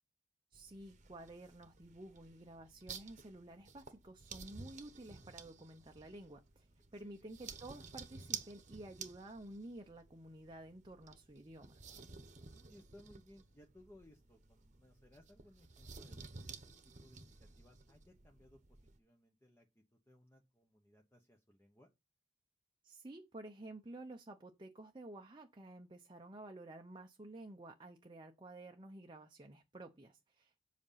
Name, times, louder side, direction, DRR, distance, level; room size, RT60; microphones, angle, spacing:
voice 1, 0.5-6.7 6.9-11.7 22.8-30.6, right 1 dB, 25° right, 0.7 m, -52 dB
sound 1, 0.5-19.0, right 6 dB, 40° right, 1.1 m, -53 dB
voice 2, 6.9-7.4 12.5-21.9, left 1 dB, 15° left, 1.0 m, -64 dB
7.8 x 5.1 x 5.7 m
head